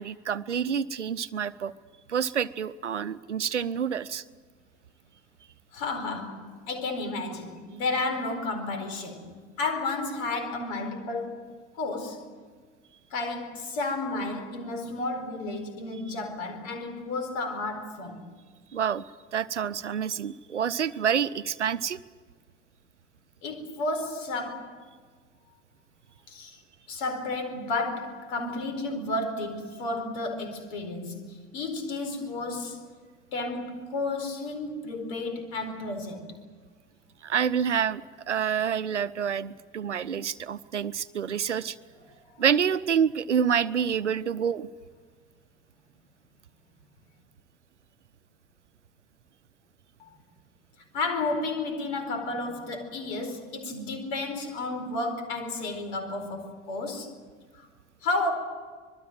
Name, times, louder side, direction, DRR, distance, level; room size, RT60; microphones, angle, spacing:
voice 1, 0.0-1.7 2.1-4.2 18.7-19.0 19.3-22.0 37.2-38.0 38.3-41.8 42.4-44.7, right 7 dB, 85° right, 0.8 m, -27 dB
voice 2, 5.7-12.3 13.1-18.2 23.4-24.8 26.3-26.6 26.9-32.8 33.3-36.3 42.1-42.4 50.0-50.2 50.9-57.1 57.5-57.7 58.0-58.3, left 2 dB, 60° left, 4.6 m, -32 dB
26.0 x 21.0 x 7.5 m
figure-of-eight pair, 60°, 35 cm